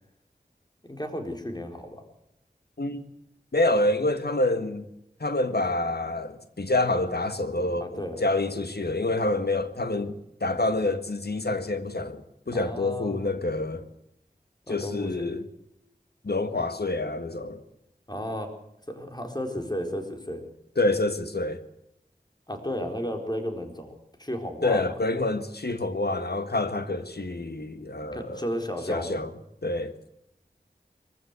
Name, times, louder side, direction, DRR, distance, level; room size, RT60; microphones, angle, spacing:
voice 1, 0.9-2.0 7.8-8.2 12.5-13.2 14.7-15.3 18.1-18.5 18.9-20.4 22.5-24.9 28.1-29.1, equal, 25° left, 4.3 m, -33 dB
voice 2, 3.5-4.8 5.2-7.9 8.2-13.9 14.7-15.5 16.2-17.6 20.8-21.6 24.6-28.4 28.9-29.3 29.6-29.9, left 2 dB, 80° left, 1.8 m, -27 dB
23.5 x 15.5 x 8.2 m
wide cardioid pair, 45°, 17 cm